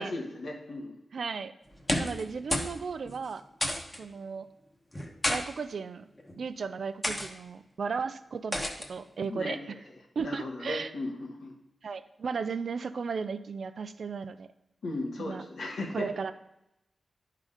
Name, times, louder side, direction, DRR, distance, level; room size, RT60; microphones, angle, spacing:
voice 1, 0.0-1.0 9.2-9.8 10.2-11.5 14.8-16.1, left 2 dB, 85° left, 1 dB, 1.5 m, -36 dB
voice 2, 1.1-1.5 2.0-3.4 4.0-4.5 5.3-6.1 6.4-9.6 10.2-10.9 11.8-14.5 15.2-15.4 15.9-16.3, right 5 dB, 70° right, 11 dB, 0.4 m, -35 dB
sound 1, 1.7-2.2 2.5-2.8 3.0-3.2 3.6-4.0 4.9-5.4 6.2-6.4 7.0-7.3 8.5-8.9, left 1 dB, 20° left, 1.1 m, -30 dB
9.9 x 3.8 x 4.9 m, 0.86 s
wide cardioid pair, 100°, 0 cm